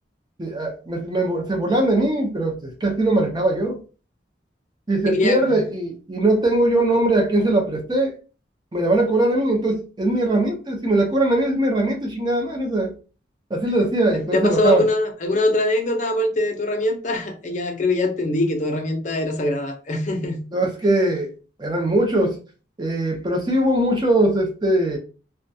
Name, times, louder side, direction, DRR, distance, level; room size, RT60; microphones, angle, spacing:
voice 1, 0.4-3.8 4.9-8.1 8.7-12.9 13.5-14.8 20.5-21.3 21.6-22.4 22.8-25.0, right 1 dB, 25° right, 0.5 m, -21 dB
voice 2, 5.1-5.4 14.1-20.4, left 2 dB, 40° left, 0.5 m, -23 dB
2.2 x 2.2 x 2.6 m
head